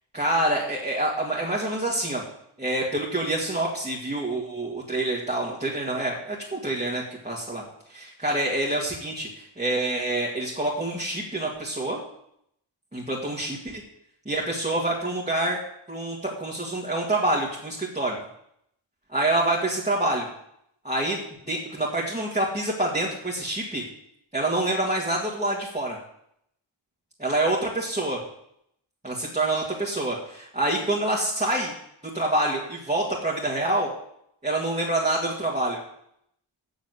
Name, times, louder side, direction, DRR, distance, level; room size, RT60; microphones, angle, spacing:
voice 1, 0.1-2.2 2.6-7.6 7.9-12.0 12.9-13.8 14.3-15.6 15.9-18.2 19.1-20.3 20.8-21.2 21.5-23.8 24.3-26.0 27.2-28.2 29.0-31.7 32.1-33.9 34.4-35.8, right 1 dB, 15° right, -5 dB, 2.2 m, -26 dB
8.1 x 7.2 x 7.9 m, 0.75 s
wide cardioid pair, 55°, 50 cm